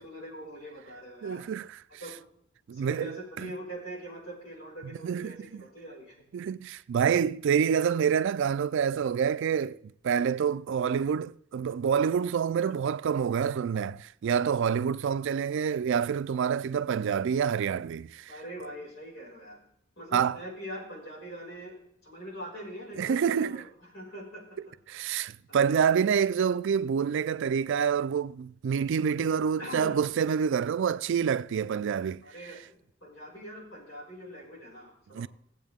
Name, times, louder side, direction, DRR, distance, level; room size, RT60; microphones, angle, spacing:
voice 1, 0.0-1.5 2.0-2.2 2.7-6.2 18.3-19.6 20.0-24.7 25.5-25.7 29.6-30.0 32.2-35.3, equal, 70° left, 5.8 m, -43 dB
voice 2, 1.2-1.7 2.7-3.5 5.0-5.6 6.3-18.3 20.1-20.4 23.0-23.6 24.9-32.2 35.1-35.3, right 7 dB, 65° right, 0.3 m, -27 dB
17.5 x 8.1 x 3.6 m
head